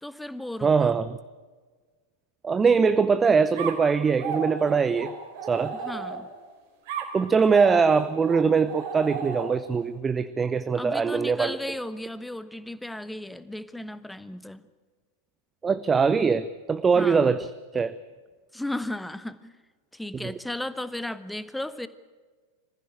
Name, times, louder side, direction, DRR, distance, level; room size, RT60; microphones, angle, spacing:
voice 1, 0.0-0.9 5.7-6.3 10.7-14.6 16.9-17.3 18.5-19.5 19.9-21.9, left 1 dB, 5° left, 14 dB, 1.1 m, -35 dB
voice 2, 0.6-1.2 2.4-5.1 5.5-5.8 7.1-11.6 15.6-17.5 17.7-17.9 20.2-20.3, right 5 dB, 15° right, 14 dB, 0.7 m, -22 dB
sound 1, 3.6-6.4 6.9-9.7, right 6 dB, 50° right, 3.7 m, -34 dB
24.5 x 15.5 x 8.9 m, 1.4 s
figure-of-eight pair, 90°, 0 cm